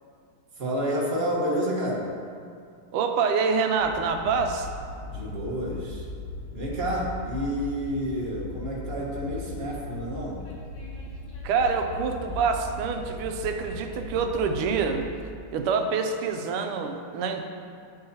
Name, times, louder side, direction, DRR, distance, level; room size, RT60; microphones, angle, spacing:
voice 1, 0.6-2.0 5.1-6.1 6.5-10.5, equal, 30° right, -4 dB, 1.4 m, -29 dB
voice 2, 2.9-4.7 11.4-15.1 15.5-17.5, right 5 dB, 85° right, 5 dB, 1.5 m, -26 dB
Train, 3.8-15.0, left 2 dB, 65° left, 1.9 m, -38 dB
10.5 x 7.5 x 2.9 m, 2.3 s
omnidirectional pair, 2.4 m